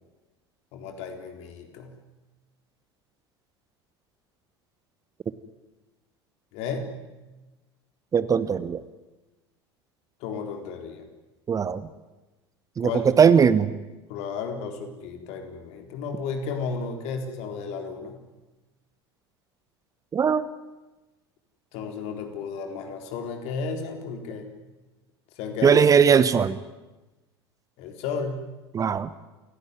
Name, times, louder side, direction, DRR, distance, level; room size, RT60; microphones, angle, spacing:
voice 1, 0.7-1.9 6.5-6.9 10.2-11.0 12.8-13.2 14.1-18.2 21.7-24.5 25.4-25.9 27.8-28.5, left 5 dB, 50° left, 5 dB, 4.0 m, -33 dB
voice 2, 8.1-8.8 11.5-11.8 12.8-12.9 13.2-13.7 20.1-20.5 25.6-26.6 28.7-29.1, right 7 dB, 25° right, 15 dB, 1.1 m, -19 dB
28.5 x 16.5 x 9.6 m, 1.1 s
figure-of-eight pair, 70°, 14 cm